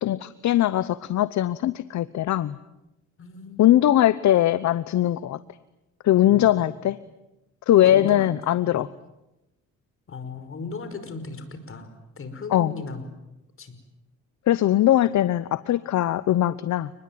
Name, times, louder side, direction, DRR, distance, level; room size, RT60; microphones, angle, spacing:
voice 1, 0.0-2.6 3.6-5.4 6.0-7.0 7.7-8.9 12.5-12.7 14.5-16.9, left 13 dB, 65° left, 15 dB, 0.9 m, -20 dB
voice 2, 3.2-3.8 6.2-6.8 7.8-8.3 8.6-8.8 10.1-13.1 13.6-13.8, left 3 dB, 45° left, 9 dB, 5.5 m, -37 dB
29.5 x 20.5 x 9.4 m, 0.95 s
cardioid pair, 90°, 30 cm